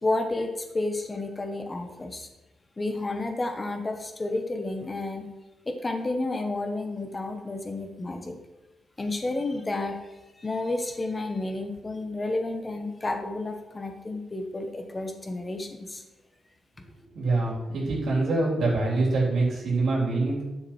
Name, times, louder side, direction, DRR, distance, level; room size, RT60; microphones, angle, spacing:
voice 1, 0.0-2.3 2.8-5.3 5.6-8.3 9.0-10.0 10.4-16.0, left 2 dB, 25° left, 5 dB, 1.5 m, -31 dB
voice 2, 17.1-20.4, right 2 dB, 75° right, -5 dB, 3.8 m, -25 dB
11.0 x 6.5 x 4.5 m, 1.1 s
cardioid pair, 100°, 0 cm